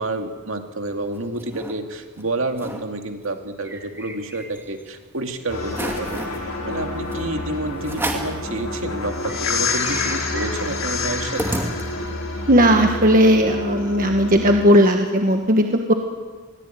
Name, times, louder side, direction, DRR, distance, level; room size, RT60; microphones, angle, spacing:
voice 1, 0.0-6.2 6.7-11.6, right 2 dB, 60° right, 5 dB, 2.4 m, -29 dB
sound 1, 0.9-1.7 2.2-2.3 2.5-2.8 3.2-4.8 5.2-5.3 5.7-6.4 7.1-7.2 7.8-8.4 8.9-9.0 9.2-12.2, right 1 dB, 10° right, 2.6 m, -31 dB
sound 2, 5.5-14.7, left 3 dB, 65° left, 4.2 m, -28 dB
voice 2, 12.5-15.9, equal, 40° right, 4 dB, 1.4 m, -16 dB
22.5 x 18.0 x 9.2 m, 1.4 s
head